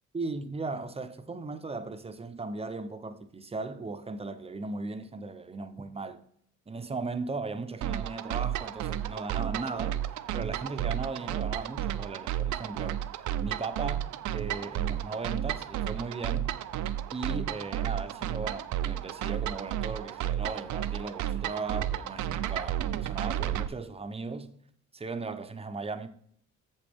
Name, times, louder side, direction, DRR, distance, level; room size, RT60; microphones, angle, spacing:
voice 1, 0.1-6.2 6.7-13.1 13.4-16.5 17.1-24.5 24.9-26.1, right 3 dB, 20° right, 0.7 m, -37 dB
sound 1, 7.8-23.7, right 11 dB, 75° right, 0.5 m, -32 dB
8.4 x 6.8 x 3.5 m
cardioid pair, 90°, 30 cm